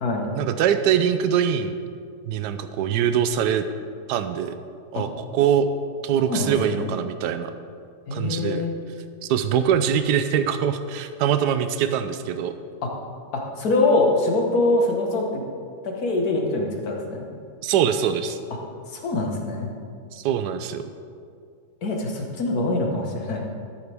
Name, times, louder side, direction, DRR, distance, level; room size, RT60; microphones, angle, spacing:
voice 1, 0.4-1.8 2.2-3.7 4.1-4.6 4.9-5.7 6.0-7.5 8.1-8.7 9.2-12.5 17.6-18.4 20.1-20.8, right 8 dB, 85° right, 10 dB, 1.2 m, -23 dB
voice 2, 6.3-6.9 8.1-8.8 12.8-12.9 13.3-15.4 15.8-17.3 18.9-19.7 21.8-23.4, left 2 dB, 65° left, 1 dB, 1.9 m, -24 dB
13.0 x 11.0 x 3.5 m, 2.3 s
omnidirectional pair, 1.8 m